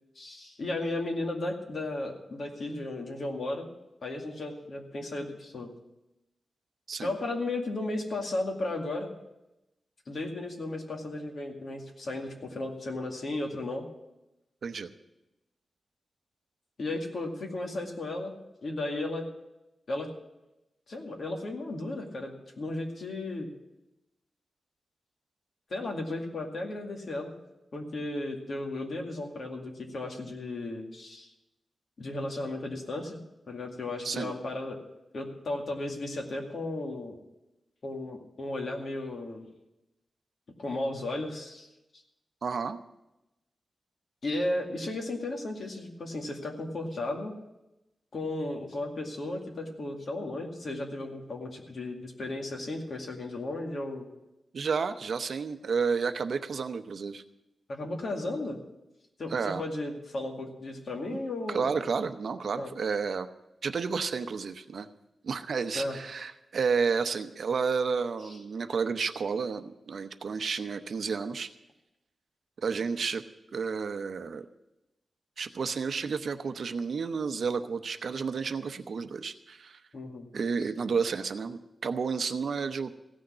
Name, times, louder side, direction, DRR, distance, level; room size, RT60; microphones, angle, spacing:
voice 1, 0.2-3.7 4.0-5.7 7.0-9.1 10.1-13.9 16.8-18.3 18.6-19.3 19.9-20.1 20.9-23.5 25.7-27.3 27.7-31.3 32.0-33.2 33.5-34.8 35.1-37.2 37.8-39.5 40.6-41.7 44.2-47.3 48.1-54.1 57.7-58.6 59.2-61.7 62.6-62.7 65.7-66.0 79.9-80.3, left 2 dB, 55° left, 1 dB, 2.2 m, -34 dB
voice 2, 42.4-42.8 54.5-57.2 59.3-59.6 61.1-61.2 61.5-63.3 63.6-64.9 65.2-71.5 72.6-73.2 73.5-74.5 75.4-79.8 80.3-83.0, right 5 dB, 65° right, 9 dB, 0.8 m, -31 dB
16.0 x 6.4 x 9.8 m, 0.93 s
wide cardioid pair, 150°, 0 cm